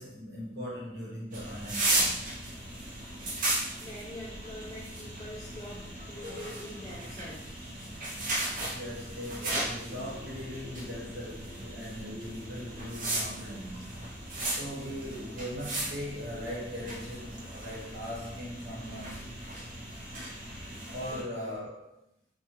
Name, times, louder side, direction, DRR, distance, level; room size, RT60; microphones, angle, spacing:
voice 1, 0.0-2.4 8.7-14.1 14.5-19.5 20.9-22.0, equal, 70° right, 0.9 m, -40 dB
sound 1, 1.3-21.2, right 1 dB, 50° right, 0.5 m, -36 dB
voice 2, 3.2-7.6 21.1-21.3, equal, 20° left, 0.3 m, -45 dB
2.5 x 2.1 x 2.9 m
head